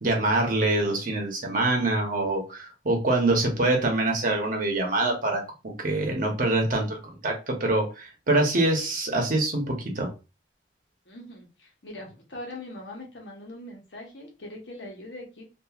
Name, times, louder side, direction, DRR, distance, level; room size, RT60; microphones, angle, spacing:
voice 1, 0.0-10.1, right 2 dB, 50° right, 1 dB, 0.8 m, -25 dB
voice 2, 11.1-15.4, left 1 dB, 85° left, 0 dB, 1.0 m, -41 dB
2.8 x 2.5 x 2.4 m, 0.30 s
head